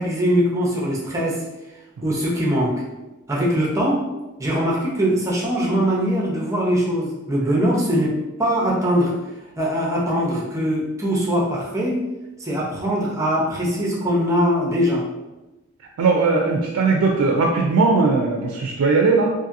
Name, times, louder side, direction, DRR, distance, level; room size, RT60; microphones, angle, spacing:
voice 1, 0.0-1.4 2.0-2.8 3.3-4.1 4.4-9.2 9.6-12.0 12.4-15.0, equal, 15° right, -3 dB, 0.5 m, -21 dB
voice 2, 16.0-19.3, right 4 dB, 75° right, 0 dB, 0.3 m, -18 dB
2.7 x 2.5 x 2.5 m, 1.0 s
head